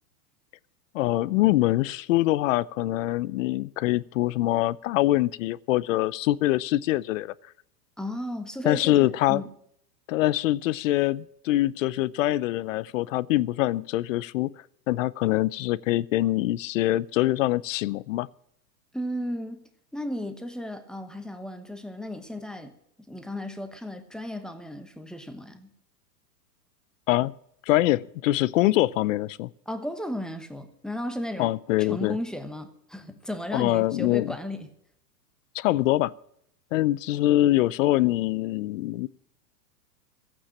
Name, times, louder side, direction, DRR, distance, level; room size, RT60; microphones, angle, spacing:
voice 1, 0.9-7.3 8.6-9.4 10.1-14.5 14.9-18.3 27.1-27.3 27.7-29.5 31.4-32.2 33.5-34.3 35.5-36.1 36.7-39.1, left 16 dB, 55° left, 20 dB, 0.6 m, -24 dB
voice 2, 8.0-9.5 18.9-19.6 19.9-22.7 23.1-25.7 29.7-34.7, left 1 dB, ahead, 8 dB, 1.0 m, -35 dB
15.0 x 8.9 x 8.6 m, 0.71 s
hypercardioid pair, 135°, 49 cm